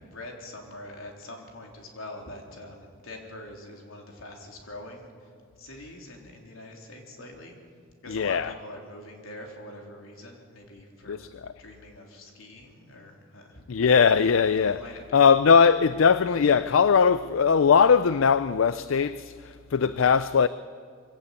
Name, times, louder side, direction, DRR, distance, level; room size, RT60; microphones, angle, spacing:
voice 1, 0.0-5.1 5.6-7.5 8.0-11.2 11.6-13.6 14.6-15.3, left 1 dB, 85° left, 3.7 m, -44 dB
voice 2, 8.1-8.5 11.1-11.5 13.7-14.8 15.1-20.5, left 6 dB, 70° left, 0.4 m, -20 dB
24.0 x 16.5 x 8.4 m
head